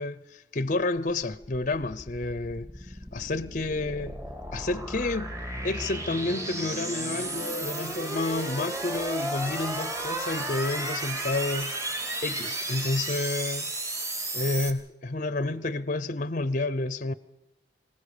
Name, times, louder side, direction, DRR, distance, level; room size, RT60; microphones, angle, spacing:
voice 1, 0.0-4.2 4.5-5.4 5.6-11.7 12.2-13.7 14.3-17.1, left 2 dB, 45° left, 0.7 m, -30 dB
sound 1, 1.1-14.7, right 1 dB, 20° right, 2.8 m, -33 dB
25.5 x 18.5 x 6.7 m
head